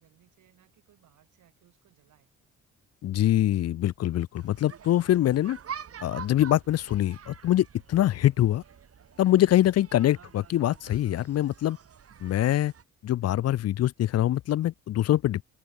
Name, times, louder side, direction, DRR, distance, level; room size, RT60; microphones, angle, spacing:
voice 1, 0.0-2.3, right 12 dB, 75° right, 7.0 m, -63 dB
voice 2, 3.0-5.6 6.0-8.6 9.2-11.8 12.2-12.7 13.0-15.4, left 13 dB, 55° left, 0.5 m, -24 dB
sound 1, 4.4-12.8, right 8 dB, 50° right, 3.9 m, -46 dB
open air
cardioid pair, 90°, 30 cm